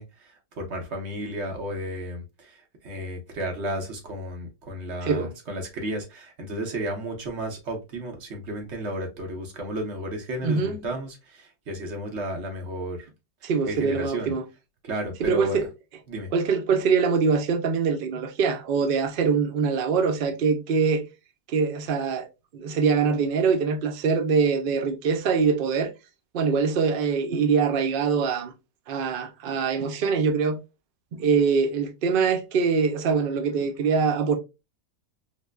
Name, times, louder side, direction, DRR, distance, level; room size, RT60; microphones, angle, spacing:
voice 1, 0.0-13.1 13.6-14.3 14.8-15.7 16.1-16.3, right 1 dB, 50° right, 1.1 m, -33 dB
voice 2, 5.0-5.3 10.4-10.8 13.4-14.4 15.2-15.6 16.3-21.1 21.5-25.9 26.3-28.5 28.9-30.6 31.1-34.4, right 5 dB, 85° right, 0.4 m, -23 dB
4.9 x 2.1 x 2.2 m
omnidirectional pair, 1.6 m